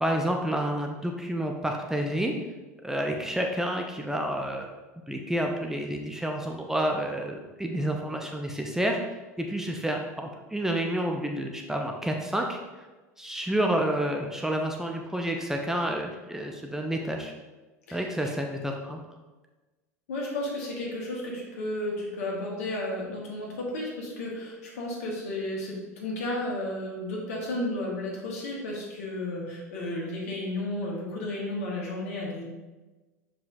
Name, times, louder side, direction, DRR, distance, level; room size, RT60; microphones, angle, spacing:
voice 1, 0.0-2.3 2.8-4.7 5.1-9.0 9.4-12.6 13.2-17.3 17.9-19.0, right 1 dB, 5° right, 2 dB, 0.6 m, -29 dB
voice 2, 20.1-32.4, left 1 dB, 60° left, -2 dB, 1.7 m, -33 dB
6.9 x 5.0 x 2.7 m, 1.2 s
figure-of-eight pair, 80°, 9 cm